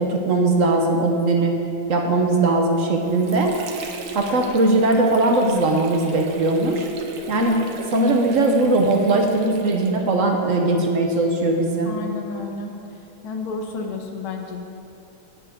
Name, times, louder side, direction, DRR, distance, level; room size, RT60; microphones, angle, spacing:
voice 1, 0.0-1.6 1.9-3.5 4.1-6.9 7.3-7.6 7.9-11.9, right 2 dB, 55° right, 2 dB, 0.9 m, -19 dB
Water / Sink (filling or washing), 2.7-10.4, right 4 dB, 80° right, 1.7 m, -38 dB
voice 2, 11.9-12.7 13.2-14.6, left 4 dB, 80° left, 3 dB, 1.9 m, -31 dB
17.5 x 6.9 x 3.7 m, 2.6 s
omnidirectional pair, 2.2 m